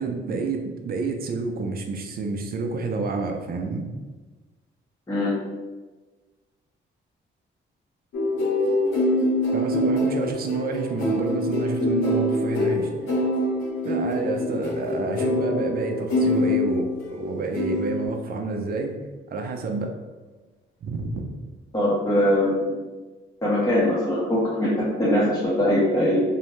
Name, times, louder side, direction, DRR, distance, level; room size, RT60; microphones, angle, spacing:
voice 1, 0.0-3.9 9.5-12.9 13.8-19.0 19.3-19.9 20.8-21.3, right 3 dB, 50° right, 4 dB, 0.4 m, -29 dB
voice 2, 5.1-5.4 21.7-22.8 23.4-26.2, left 1 dB, 15° left, -7 dB, 0.6 m, -22 dB
sound 1, 8.1-17.2 17.5-18.1, left 1 dB, 80° left, 0.7 m, -24 dB
2.6 x 2.0 x 3.0 m, 1.3 s
cardioid pair, 90°, 20 cm